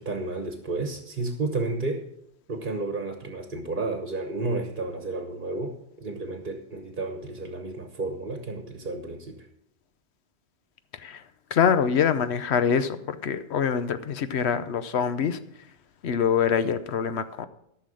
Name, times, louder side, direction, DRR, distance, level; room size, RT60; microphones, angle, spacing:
voice 1, 0.0-2.1 2.5-9.5, right 2 dB, 55° right, 5 dB, 1.2 m, -32 dB
voice 2, 11.5-15.4 16.0-17.5, left 7 dB, 90° left, 12 dB, 1.0 m, -25 dB
13.5 x 6.1 x 6.3 m, 0.75 s
omnidirectional pair, 1.1 m